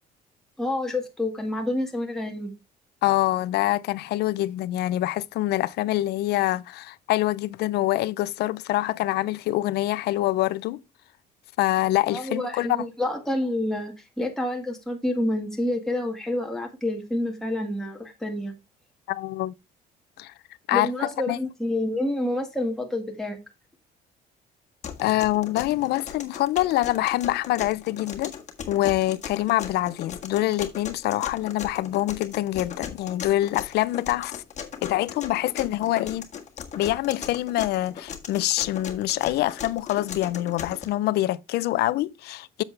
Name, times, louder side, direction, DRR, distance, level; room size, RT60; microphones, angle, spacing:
voice 1, 0.6-2.5 12.1-18.5 20.7-23.4, left 1 dB, 5° left, 1.9 m, -28 dB
voice 2, 3.0-10.8 11.6-12.7 19.1-19.5 20.2-20.3 20.7-21.4 25.0-28.3 28.7-34.4 34.8-36.3 36.8-42.6, left 16 dB, 75° left, 0.5 m, -25 dB
sound 1, 24.8-40.8, left 7 dB, 45° left, 1.6 m, -38 dB
7.8 x 7.0 x 3.3 m
cardioid pair, 110°, 17 cm